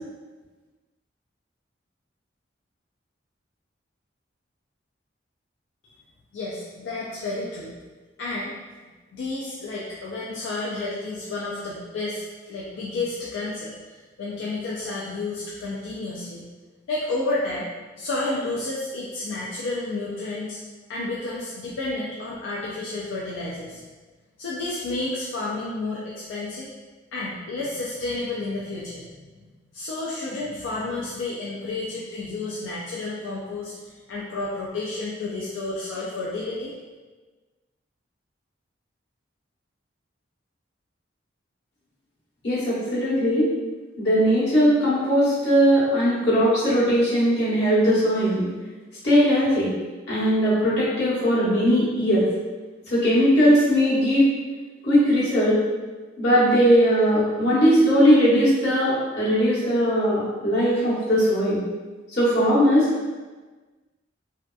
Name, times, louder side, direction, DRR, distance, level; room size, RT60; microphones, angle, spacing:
voice 1, 6.3-7.7 8.2-8.6 9.1-12.2 12.5-16.5 16.9-17.7 18.0-20.6 20.9-23.8 24.4-26.7 27.1-29.4 29.7-36.7, left 2 dB, 85° left, -5 dB, 0.4 m, -31 dB
voice 2, 42.4-43.4 44.0-48.5 49.0-49.7 50.1-52.2 52.9-54.3 54.8-55.6 56.2-61.6 62.1-62.9, equal, 60° left, -9 dB, 1.1 m, -19 dB
2.7 x 2.2 x 2.3 m, 1.3 s
head